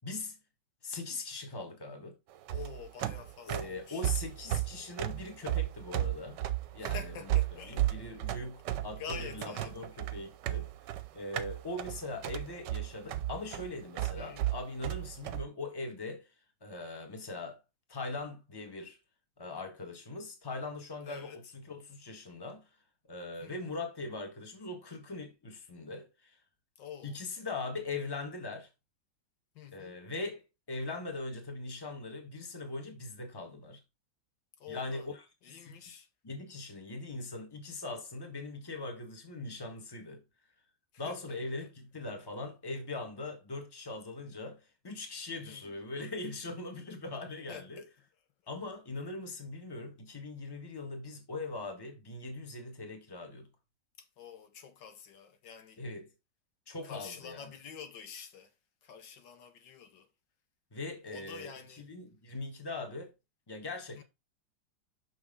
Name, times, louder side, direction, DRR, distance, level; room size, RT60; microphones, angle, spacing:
voice 1, 0.0-0.4 0.8-2.2 3.5-6.4 6.7-10.7 11.1-16.3 16.6-17.6 17.9-19.0 19.4-22.7 23.1-26.4 27.0-28.7 29.7-33.8 34.7-35.2 35.6-36.0 36.2-40.2 41.0-47.9 48.5-53.5 55.8-56.1 56.7-57.5 60.7-63.1 63.5-64.0, left 2 dB, 15° left, 1.3 m, -41 dB
sound 1, 2.3-15.4, right 14 dB, 75° right, 1.3 m, -34 dB
voice 2, 2.5-4.0 6.8-7.8 9.0-9.7 14.2-14.5 21.0-21.4 23.4-23.6 26.8-27.2 29.5-30.0 34.6-35.1 35.4-36.1 41.0-41.7 45.5-45.7 47.5-47.8 54.0-55.8 56.8-58.5 58.8-60.1 61.0-61.9 64.0-64.1, left 7 dB, 75° left, 1.6 m, -47 dB
6.3 x 6.0 x 3.7 m
omnidirectional pair, 2.0 m